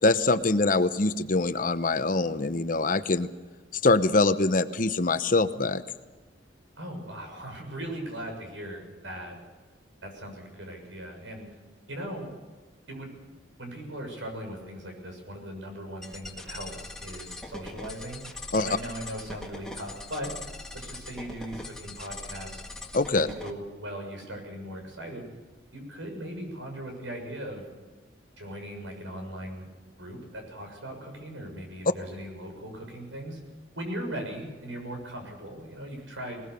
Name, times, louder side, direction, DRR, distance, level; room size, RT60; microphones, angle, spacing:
voice 1, 0.0-3.3 3.7-5.8 18.5-18.7 22.9-23.3, left 3 dB, 45° left, 11 dB, 0.9 m, -24 dB
voice 2, 6.8-9.4 10.0-11.5 11.9-12.3 12.9-13.1 13.6-18.2 18.5-20.3 20.7-22.6 23.1-25.3 25.7-27.6 28.4-29.7 30.0-33.4 33.7-36.4, right 1 dB, 85° right, 3 dB, 6.8 m, -39 dB
sound 1, 16.0-23.5, left 2 dB, 5° left, 1.8 m, -41 dB
21.0 x 20.0 x 6.8 m, 1.3 s
head